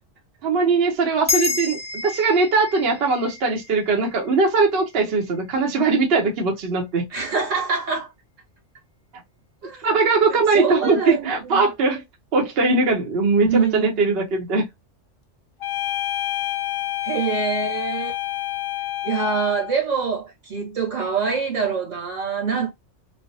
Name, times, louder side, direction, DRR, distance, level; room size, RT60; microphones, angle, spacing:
voice 1, 0.4-7.1 9.8-12.0 12.3-14.6, right 4 dB, 60° right, 0.9 m, -20 dB
sound 1, 1.3-6.0, left 4 dB, 10° left, 0.4 m, -31 dB
voice 2, 7.1-8.1 9.6-9.9 10.3-11.6 13.4-14.0 17.0-18.2 19.0-22.7, right 5 dB, 85° right, 1.7 m, -25 dB
sound 2, 15.6-19.8, left 13 dB, 80° left, 1.0 m, -28 dB
3.2 x 2.1 x 2.6 m
omnidirectional pair, 1.3 m